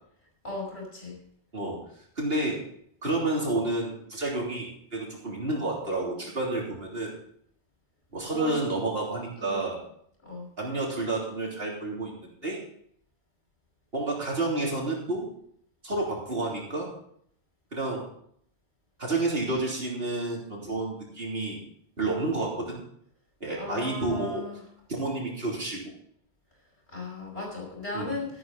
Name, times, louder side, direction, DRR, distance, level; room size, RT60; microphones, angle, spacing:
voice 1, 0.4-1.2 8.2-8.6 9.4-9.7 10.2-10.5 23.6-24.6 26.9-28.3, left 2 dB, 65° left, -2 dB, 5.8 m, -36 dB
voice 2, 2.2-2.6 3.0-7.1 8.1-9.8 10.6-12.1 12.4-12.6 13.9-15.3 15.8-16.9 17.7-18.1 19.0-21.6 22.0-22.8 23.4-24.4 24.9-25.9 27.9-28.2, right 2 dB, 60° right, -2 dB, 3.6 m, -30 dB
12.5 x 12.0 x 4.1 m, 0.67 s
omnidirectional pair, 1.2 m